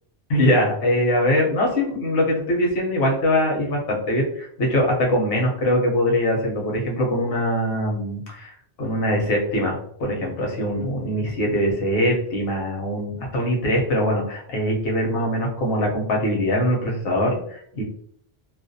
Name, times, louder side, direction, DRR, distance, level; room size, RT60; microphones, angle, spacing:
voice 1, 0.3-17.8, equal, 70° left, -1 dB, 0.9 m, -22 dB
2.4 x 2.1 x 2.6 m, 0.65 s
omnidirectional pair, 1.0 m